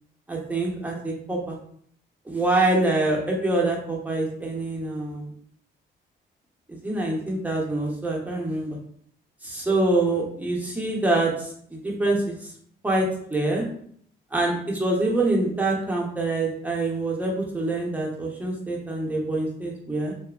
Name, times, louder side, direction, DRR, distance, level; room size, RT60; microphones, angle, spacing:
voice 1, 0.3-1.6 2.3-5.3 6.7-8.8 9.4-12.5 12.8-13.7 14.3-20.1, right 2 dB, 10° right, -2 dB, 0.7 m, -25 dB
2.7 x 2.4 x 2.3 m, 0.62 s
cardioid pair, 90°, 20 cm